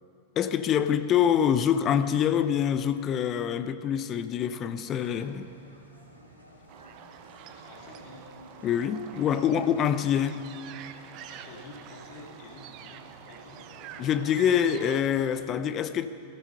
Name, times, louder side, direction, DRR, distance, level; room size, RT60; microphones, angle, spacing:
voice 1, 0.4-5.5 8.6-10.4 14.0-16.1, left 9 dB, 30° left, 12 dB, 0.6 m, -25 dB
sound 1, 4.8-15.5, right 1 dB, 90° left, 2.3 m, -53 dB
sound 2, 6.7-15.0, right 9 dB, 40° right, 0.8 m, -47 dB
voice 2, 7.5-8.2 11.3-13.6, left 2 dB, 50° left, -1 dB, 2.8 m, -49 dB
16.0 x 13.5 x 5.5 m, 2.7 s
figure-of-eight pair, 90°, 0 cm